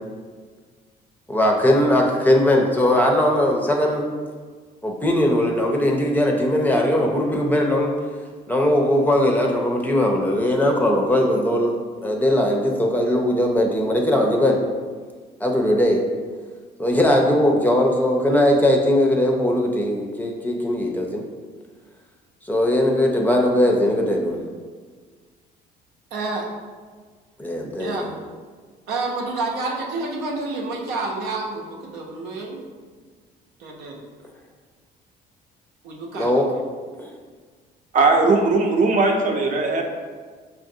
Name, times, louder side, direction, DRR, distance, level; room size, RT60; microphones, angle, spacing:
voice 1, 1.3-4.1 4.8-7.9 8.5-14.6 15.4-16.0 16.8-21.2 22.4-24.4 27.4-28.1 36.1-36.5 37.0-37.1, left 1 dB, 10° left, 0 dB, 0.5 m, -19 dB
voice 2, 26.1-26.4 27.8-28.0 28.9-32.6 33.6-34.0 35.8-36.6, right 3 dB, 90° right, -1 dB, 0.7 m, -29 dB
voice 3, 37.9-39.8, right 3 dB, 50° right, 2 dB, 0.7 m, -18 dB
5.4 x 2.5 x 2.7 m, 1.5 s
cardioid pair, 110°, 17 cm